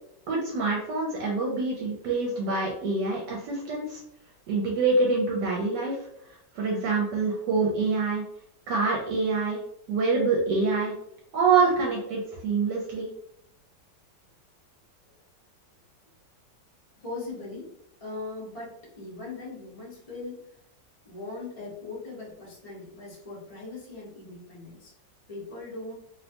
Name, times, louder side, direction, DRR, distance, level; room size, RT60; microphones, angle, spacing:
voice 1, 0.3-4.0 4.5-6.0 6.5-8.2 8.7-9.6 9.9-10.9 11.3-13.1, right 4 dB, 75° right, -2 dB, 1.1 m, -26 dB
voice 2, 17.0-17.7 18.0-20.4 21.0-24.9 25.3-25.9, left 3 dB, 40° left, -6 dB, 0.5 m, -39 dB
2.9 x 2.1 x 2.7 m, 0.76 s
omnidirectional pair, 1.9 m